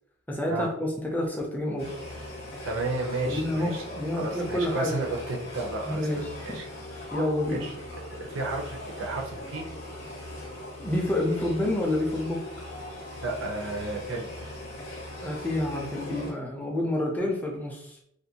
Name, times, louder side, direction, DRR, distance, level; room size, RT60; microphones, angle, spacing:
voice 1, 0.3-1.9 3.3-5.1 5.9-6.6 7.1-7.7 10.8-12.4 15.2-18.0, left 1 dB, 10° left, -1 dB, 0.3 m, -28 dB
sound 1, 1.8-16.3, left 1 dB, 50° left, 0.6 m, -40 dB
voice 2, 2.6-3.8 4.2-6.7 7.5-7.7 8.2-9.7 13.2-14.3, right 2 dB, 75° right, 0 dB, 0.6 m, -32 dB
2.4 x 2.1 x 2.8 m, 0.75 s
head